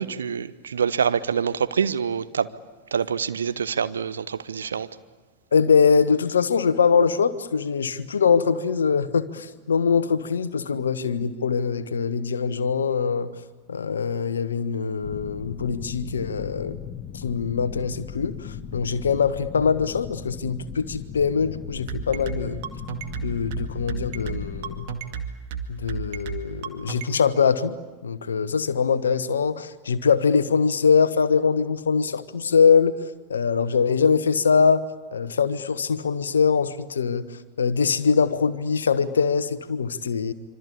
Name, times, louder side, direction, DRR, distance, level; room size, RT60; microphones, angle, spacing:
voice 1, 0.0-2.5 2.9-4.9, right 7 dB, 70° right, 13 dB, 1.0 m, -26 dB
voice 2, 5.5-13.3 13.7-16.8 17.1-22.6 23.2-24.9 25.7-27.8 28.0-33.0 33.3-34.8 35.1-37.3 37.6-40.3, left 6 dB, 70° left, 12 dB, 1.2 m, -22 dB
sound 1, 15.0-25.0, left 7 dB, 30° left, 1.4 m, -38 dB
sound 2, 21.9-27.1, right 8 dB, 50° right, 2.1 m, -32 dB
25.5 x 25.0 x 8.6 m, 1.2 s
figure-of-eight pair, 90°, 0 cm